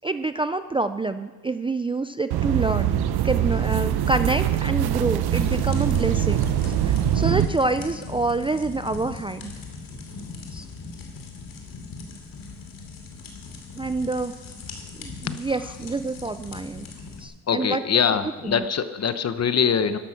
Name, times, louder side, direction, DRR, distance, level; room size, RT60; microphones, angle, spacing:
voice 1, 0.0-6.5 6.8-9.5 10.5-10.7 13.7-14.3 15.0-16.9 17.2-17.8 18.4-18.6, right 3 dB, 15° right, 10 dB, 0.4 m, -27 dB
sound 1, 2.3-7.5, right 10 dB, 80° right, 0.9 m, -23 dB
sound 2, 5.4-17.2, left 4 dB, 60° left, 2.7 m, -39 dB
voice 2, 17.5-20.0, left 7 dB, 40° left, 11 dB, 0.9 m, -23 dB
12.5 x 12.0 x 5.8 m, 1.2 s
cardioid pair, 110°, 38 cm